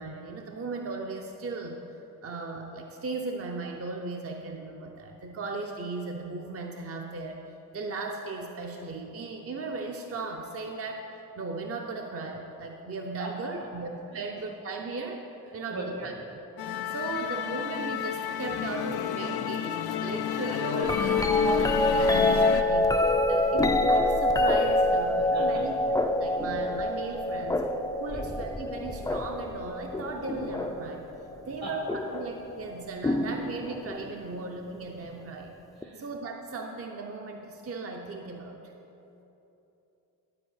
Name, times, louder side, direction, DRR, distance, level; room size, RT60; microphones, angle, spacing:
voice 1, 0.0-1.8 2.2-7.4 7.7-15.2 15.5-16.1 16.9-25.7 26.1-27.6 28.0-31.0 31.5-35.5 36.0-38.6, right 3 dB, 40° right, 2 dB, 0.7 m, -37 dB
voice 2, 13.2-13.5 14.1-14.3 15.7-16.1 18.4-18.6 25.1-25.8 26.4-26.5 28.1-28.2 31.6-31.7 35.8-36.0, right 2 dB, 75° right, -2 dB, 2.6 m, -39 dB
Musical instrument, 16.6-22.6, left 9 dB, 85° left, 0.6 m, -31 dB
sound 1, 20.8-30.9 31.9-32.3 33.0-34.0 35.8-35.9, left 2 dB, 10° left, 0.4 m, -26 dB
12.0 x 4.7 x 8.2 m, 3.0 s
wide cardioid pair, 140°, 37 cm